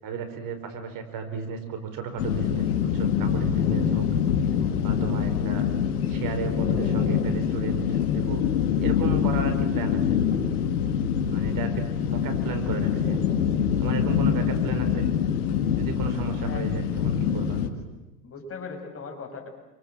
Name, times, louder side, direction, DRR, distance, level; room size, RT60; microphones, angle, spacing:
voice 1, 0.0-4.1 4.8-5.7 6.1-8.4 8.8-10.2 11.3-13.3 13.8-15.1 15.7-17.6, right 6 dB, 50° right, 8 dB, 5.1 m, -34 dB
sound 1, 2.2-17.7, left 8 dB, 85° left, 2.3 m, -25 dB
voice 2, 16.4-16.7 17.7-17.9 18.2-19.5, left 4 dB, 30° left, 4 dB, 7.3 m, -39 dB
29.0 x 26.0 x 7.6 m, 1.0 s
hypercardioid pair, 95°, 44 cm